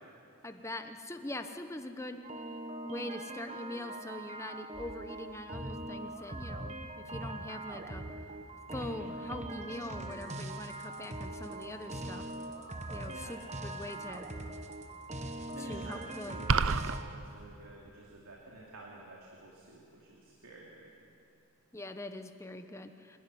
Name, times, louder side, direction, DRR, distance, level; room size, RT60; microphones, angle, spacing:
voice 1, 0.4-2.2 2.8-8.1 8.7-12.2 12.9-14.3 15.6-16.4 21.7-23.2, left 1 dB, 15° left, 7 dB, 1.0 m, -43 dB
sound 1, 2.2-17.0, right 2 dB, 30° right, 1.1 m, -42 dB
voice 2, 15.5-21.1, right 2 dB, 85° right, -3 dB, 2.8 m, -51 dB
sound 2, 16.5-17.0, right 5 dB, 65° right, 0.6 m, -26 dB
26.0 x 12.0 x 9.9 m, 2.6 s
head